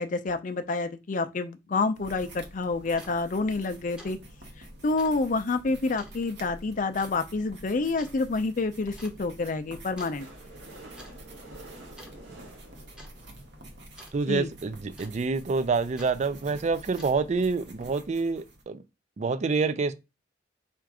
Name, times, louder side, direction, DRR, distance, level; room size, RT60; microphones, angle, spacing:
voice 1, 0.0-4.2 4.8-10.3 14.3-14.5, left 3 dB, 45° left, 0.5 m, -28 dB
sound 1, 2.0-18.6, right 1 dB, 65° right, 1.0 m, -48 dB
sound 2, 3.0-3.2 3.5-3.7 4.0-4.2 4.4-4.5 5.0-5.2 6.0-6.2 7.0-7.2 8.0-8.2 9.0-9.2 10.0-10.2 10.8-11.1 11.4-11.7 12.0-12.5 13.0-13.1 14.0-14.2 15.0-15.4 16.0-16.2 16.8-17.3, equal, 5° right, 0.7 m, -49 dB
sound 3, 10.2-14.1 14.7-14.8 15.0-15.1 15.3-15.4 15.7-15.8, right 2 dB, 85° right, 1.6 m, -48 dB
voice 2, 14.1-18.8 19.2-19.9, right 4 dB, 40° right, 0.4 m, -27 dB
4.3 x 2.5 x 4.8 m
head